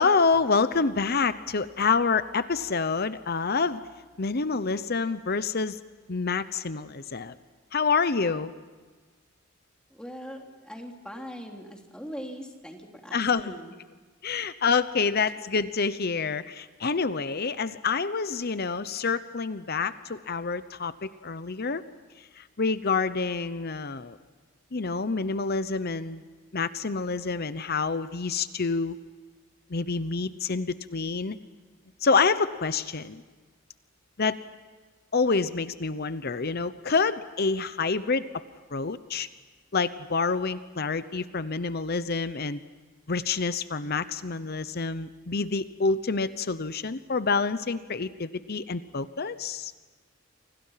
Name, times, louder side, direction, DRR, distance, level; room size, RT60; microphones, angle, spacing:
voice 1, 0.0-3.8 4.2-5.8 6.1-7.3 7.7-8.5 13.1-13.5 14.2-21.8 22.4-24.2 24.7-26.2 26.5-29.0 29.7-31.4 32.0-33.2 34.2-34.4 35.1-38.2 38.7-39.3 39.7-42.6 43.1-49.7, left 4 dB, 50° left, 13 dB, 0.9 m, -27 dB
voice 2, 9.9-13.7, equal, 5° left, 1 dB, 3.4 m, -41 dB
30.0 x 26.0 x 5.8 m, 1.4 s
head